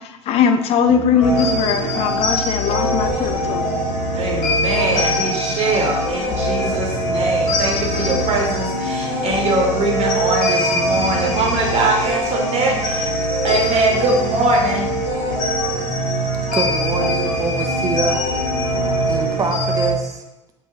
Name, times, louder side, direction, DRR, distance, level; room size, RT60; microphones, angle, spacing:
voice 1, 0.0-3.9, left 6 dB, 40° left, 0.4 m, -20 dB
sound 1, 0.9-19.6, right 1 dB, 85° right, 0.6 m, -30 dB
sound 2, 1.2-19.9, equal, 60° left, 0.9 m, -22 dB
voice 2, 4.1-13.1 13.4-14.9, right 2 dB, 40° right, 1.0 m, -22 dB
voice 3, 16.5-18.2 19.1-20.2, right 3 dB, 20° right, 0.5 m, -24 dB
4.7 x 2.6 x 2.3 m
figure-of-eight pair, 60°, 16 cm